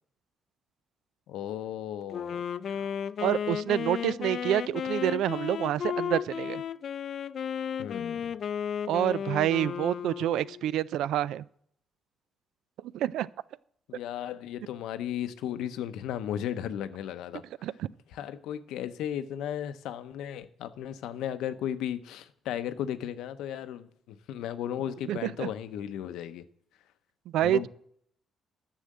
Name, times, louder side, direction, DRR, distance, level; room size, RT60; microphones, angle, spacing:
voice 1, 1.3-2.4 7.8-8.3 13.9-17.4 18.1-26.5 27.4-27.7, left 10 dB, 90° left, 0.7 m, -35 dB
Wind instrument woodwind instrument, 2.1-10.7, left 8 dB, 60° left, 0.4 m, -34 dB
voice 2, 3.2-6.6 8.9-11.4 12.9-13.3 17.6-17.9 25.1-25.5 27.3-27.7, right 12 dB, 85° right, 0.3 m, -28 dB
10.0 x 6.3 x 7.5 m
cardioid pair, 90°, 0 cm